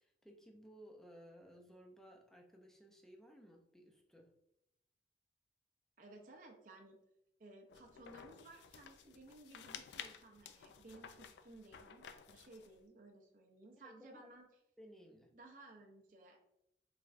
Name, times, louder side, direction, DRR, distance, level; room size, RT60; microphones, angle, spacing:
voice 1, 0.0-4.3 13.8-14.3 14.8-15.3, equal, ahead, 1 dB, 0.4 m, -59 dB
voice 2, 6.0-7.0 7.4-14.5 15.3-16.4, right 2 dB, 50° right, 1 dB, 0.5 m, -58 dB
sound 1, 7.7-12.8, left 7 dB, 80° left, 0.3 m, -54 dB
3.6 x 3.2 x 2.4 m, 0.82 s
head